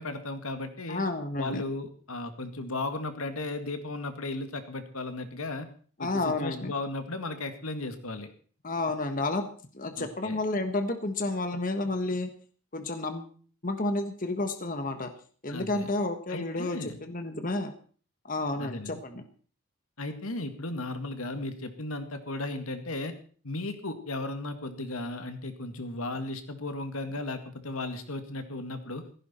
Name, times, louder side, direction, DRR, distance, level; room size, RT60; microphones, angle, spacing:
voice 1, 0.0-1.0 1.4-5.7 6.0-8.3 10.0-10.4 15.5-15.9 16.3-17.0 18.6-19.0 20.0-23.2 23.4-29.0, left 2 dB, 80° left, 8 dB, 2.1 m, -35 dB
voice 2, 0.9-1.6 6.0-6.7 8.6-12.3 12.7-13.3 13.6-15.1 15.4-17.7 18.2-19.2, left 2 dB, 40° left, 7 dB, 1.4 m, -31 dB
16.5 x 15.0 x 4.5 m, 0.43 s
head